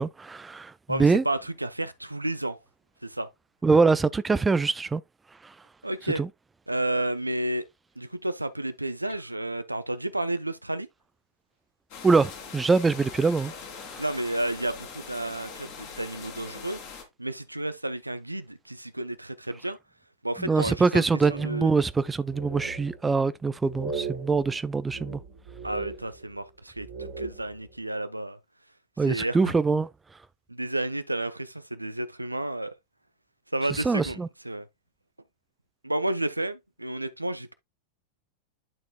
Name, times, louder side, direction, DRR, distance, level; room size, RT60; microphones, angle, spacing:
voice 1, 0.0-1.2 3.6-5.0 5.4-5.5 6.2-6.3 12.0-14.0 20.4-25.2 29.0-29.9 33.7-34.3, right 4 dB, 15° right, 0.3 m, -24 dB
voice 2, 0.9-2.6 3.0-3.3 5.8-6.2 6.7-7.6 8.0-10.9 14.0-16.8 17.2-19.8 20.2-21.7 25.6-28.4 29.1-29.5 30.5-32.7 33.5-34.7 35.8-37.5, right 1 dB, 85° right, 0.6 m, -31 dB
sound 1, 11.9-17.0, left 5 dB, 45° left, 2.1 m, -42 dB
sound 2, 21.2-22.0 22.3-23.2 23.7-26.5 26.7-27.8, right 4 dB, 55° right, 2.4 m, -39 dB
10.5 x 4.4 x 2.3 m
figure-of-eight pair, 90°, 0 cm